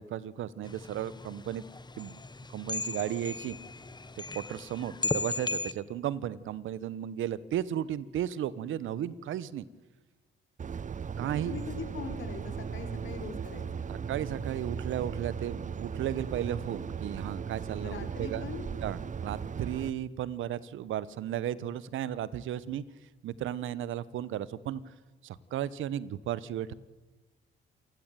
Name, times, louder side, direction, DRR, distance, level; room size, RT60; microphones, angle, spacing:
voice 1, 0.0-1.6 2.0-2.2 2.5-3.6 4.3-9.7 11.1-11.5 13.9-18.4 18.8-22.8 23.2-24.8 25.2-26.7, right 11 dB, 80° right, 19 dB, 1.2 m, -34 dB
sound 1, 0.6-5.7, left 3 dB, 20° left, 1.3 m, -37 dB
sound 2, 10.6-19.9, right 6 dB, 40° right, 0.9 m, -37 dB
voice 2, 11.4-13.9 17.8-18.7, left 6 dB, 75° left, 8 dB, 4.7 m, -41 dB
28.0 x 15.5 x 9.2 m, 1.3 s
cardioid pair, 80°, 20 cm